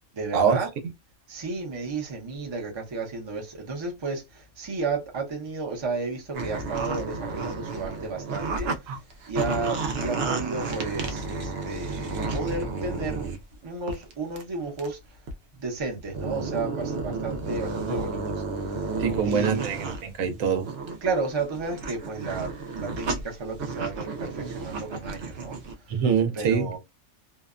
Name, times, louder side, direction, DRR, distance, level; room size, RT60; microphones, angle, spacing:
voice 1, 0.1-0.7 1.3-8.7 9.3-13.3 13.6-15.0 15.6-18.9 19.3-19.7 21.0-22.5 22.8-25.6 26.3-26.8, right 3 dB, 30° right, 0.6 m, -32 dB
sound 1, 6.3-8.8 9.1-13.4 13.9-14.1 14.4-14.5 14.8-14.9 15.3-15.4 16.0-20.0 20.4-25.7, right 3 dB, 60° right, 0.7 m, -32 dB
voice 2, 19.0-20.7 25.9-26.7, right 6 dB, 85° right, 1.1 m, -24 dB
2.7 x 2.1 x 2.4 m
omnidirectional pair, 1.4 m